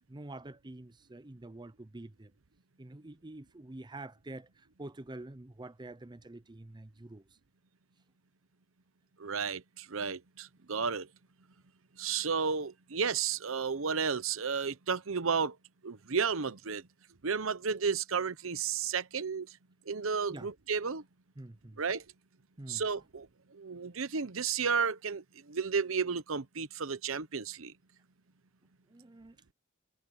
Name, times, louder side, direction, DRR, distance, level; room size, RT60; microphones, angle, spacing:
voice 1, 0.1-2.3 2.8-7.2 20.3-20.5 21.4-21.8 22.6-22.8 28.9-29.3, right 2 dB, 20° right, 0.7 m, -47 dB
voice 2, 9.2-11.1 12.0-15.5 15.8-16.8 17.2-19.5 19.9-21.0 21.8-22.0 22.7-23.3 23.5-27.7, right 5 dB, 70° right, 0.9 m, -32 dB
head